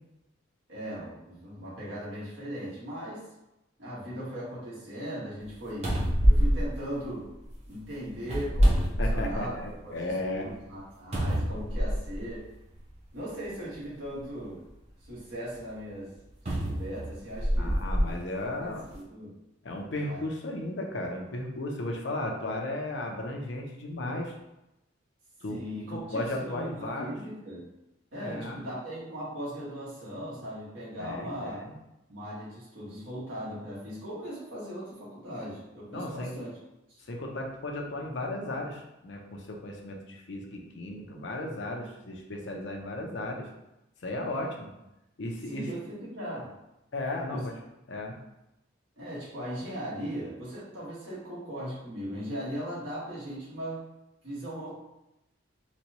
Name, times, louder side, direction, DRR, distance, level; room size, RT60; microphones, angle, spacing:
voice 1, 0.7-3.2 3.8-5.9 6.2-7.3 7.7-9.6 9.8-12.5 13.1-14.6 15.0-16.1 16.6-18.1 18.5-19.3 20.0-20.2 25.5-27.7 28.1-31.6 32.1-36.5 36.9-37.0 45.5-46.5 47.3-47.5 49.0-53.8 54.2-54.7, equal, 75° right, -8 dB, 1.5 m, -38 dB
sound 1, 5.4-5.5 5.8-7.5 8.2-9.6 10.1-10.2 11.1-12.2 13.2-13.3 16.4-18.1 18.8-18.9, equal, 35° right, 0.6 m, -25 dB
voice 2, 9.0-10.5 17.6-18.8 19.6-24.3 25.4-25.6 25.9-27.2 28.2-28.6 31.0-31.7 35.9-36.3 37.1-43.5 44.0-44.7 45.2-45.7 46.9-47.5 47.9-48.2, left 1 dB, 65° left, 1 dB, 0.6 m, -35 dB
4.1 x 2.3 x 2.9 m, 0.91 s
head